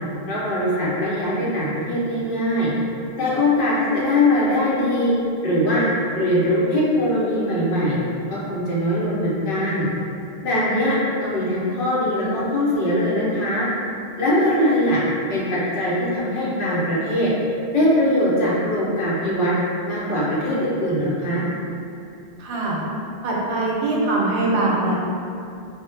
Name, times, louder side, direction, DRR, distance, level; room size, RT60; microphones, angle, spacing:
voice 1, 0.3-2.7 3.2-5.1 5.4-5.8 6.1-8.0 8.3-9.9 10.4-13.7 14.2-15.0 15.3-17.3 17.7-19.5 19.8-21.5, left 1 dB, 60° left, -8 dB, 0.7 m, -21 dB
voice 2, 22.4-22.8 23.2-25.0, right 2 dB, 85° right, -4 dB, 0.8 m, -22 dB
2.0 x 2.0 x 3.1 m, 2.5 s
omnidirectional pair, 1.1 m